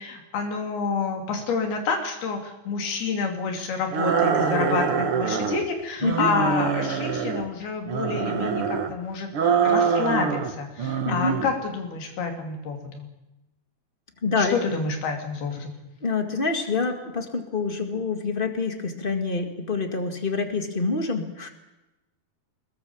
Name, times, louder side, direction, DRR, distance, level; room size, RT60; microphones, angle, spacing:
voice 1, 0.0-13.1 14.4-15.7, left 5 dB, 85° left, 4 dB, 4.9 m, -28 dB
sound 1, 3.9-5.6 6.0-7.5 7.9-8.9 9.3-10.5 10.8-11.5, right 6 dB, 55° right, 1.7 m, -24 dB
voice 2, 11.0-11.3 14.2-14.5 16.0-21.5, left 4 dB, 35° left, 6 dB, 0.8 m, -26 dB
23.5 x 20.5 x 7.2 m, 0.99 s
omnidirectional pair, 4.4 m